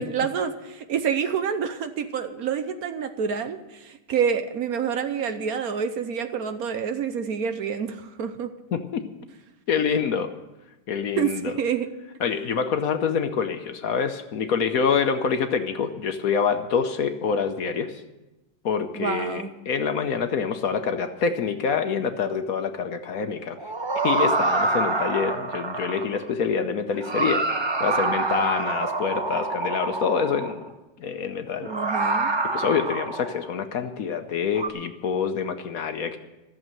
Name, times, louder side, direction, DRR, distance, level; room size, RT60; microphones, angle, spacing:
voice 1, 0.0-8.5 11.2-11.9 18.9-19.5 31.6-32.3, right 7 dB, 65° right, 9 dB, 1.2 m, -28 dB
voice 2, 8.7-9.0 9.7-10.3 10.9-11.5 12.2-17.9 18.6-23.6 24.0-27.5 27.8-30.7 31.0-31.7 32.5-36.2, left 6 dB, 60° left, 8 dB, 1.2 m, -26 dB
sound 1, 23.6-26.3 26.9-30.7 31.6-33.5 34.5-34.7, right 3 dB, 30° right, 0.5 m, -26 dB
14.0 x 7.5 x 8.9 m, 1.0 s
omnidirectional pair, 1.8 m